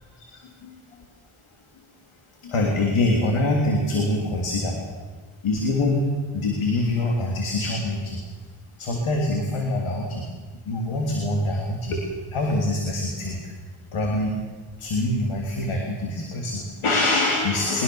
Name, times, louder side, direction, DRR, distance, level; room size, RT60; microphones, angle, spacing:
voice 1, 0.1-1.0 2.4-4.8 5.4-8.2 8.8-10.3 10.6-12.0 12.3-13.5 13.9-14.3 14.8-17.8, left 2 dB, 85° left, 1 dB, 3.5 m, -24 dB
22.0 x 20.5 x 7.2 m, 1.4 s
cardioid pair, 55°, 48 cm